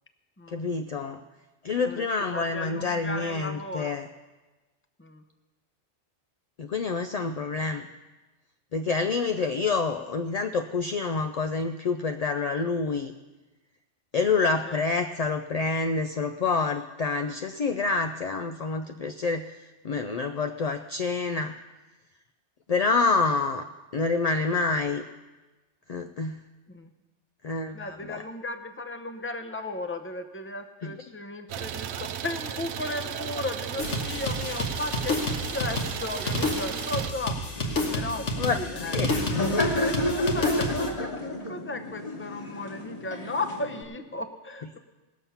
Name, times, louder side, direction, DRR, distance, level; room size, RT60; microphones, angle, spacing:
voice 1, 0.5-1.2 1.6-4.1 6.6-7.9 8.7-13.1 14.1-19.5 19.8-21.6 22.7-23.7 23.9-25.0 25.9-26.4 27.4-28.2 30.8-30.9 38.4-39.1, left 4 dB, 55° left, 6 dB, 0.4 m, -27 dB
voice 2, 1.8-4.0 5.0-5.2 14.7-14.8 26.7-26.9 27.7-39.0 39.3-44.8, left 2 dB, 15° left, 6 dB, 0.6 m, -36 dB
Idling, 31.5-37.1, right 9 dB, 75° right, 0.8 m, -35 dB
sound 1, 33.8-40.9, left 2 dB, 85° left, 1.8 m, -30 dB
Laughter, 37.6-43.8, left 1 dB, 35° left, 1.4 m, -31 dB
19.0 x 7.1 x 5.6 m, 1.2 s
omnidirectional pair, 1.2 m